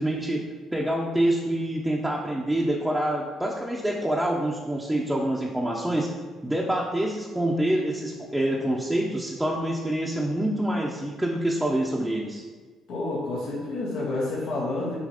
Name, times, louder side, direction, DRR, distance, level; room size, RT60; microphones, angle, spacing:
voice 1, 0.0-6.1 6.4-12.4, right 1 dB, 5° right, -3 dB, 0.8 m, -26 dB
voice 2, 12.9-15.0, left 2 dB, 80° left, -7 dB, 1.9 m, -29 dB
7.4 x 3.2 x 5.1 m, 1.4 s
cardioid pair, 90°, 0 cm